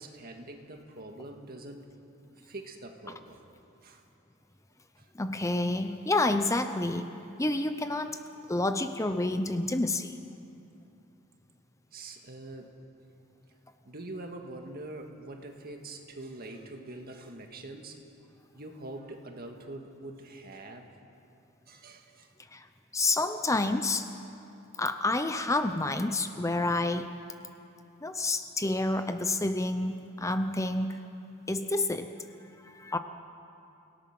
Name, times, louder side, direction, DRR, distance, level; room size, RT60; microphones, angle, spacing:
voice 1, 0.0-1.9 2.4-3.4 3.8-4.0 5.0-5.1 11.9-12.7 13.8-18.0 18.5-20.9 21.7-22.3, right 2 dB, 45° right, 4 dB, 1.9 m, -44 dB
voice 2, 5.1-7.1 7.4-8.2 8.5-10.2 22.5-22.7 22.9-24.1 24.8-27.1 28.0-31.0 31.5-32.1 32.6-33.0, left 2 dB, 15° left, 8 dB, 0.6 m, -29 dB
29.0 x 18.0 x 6.0 m, 2.7 s
head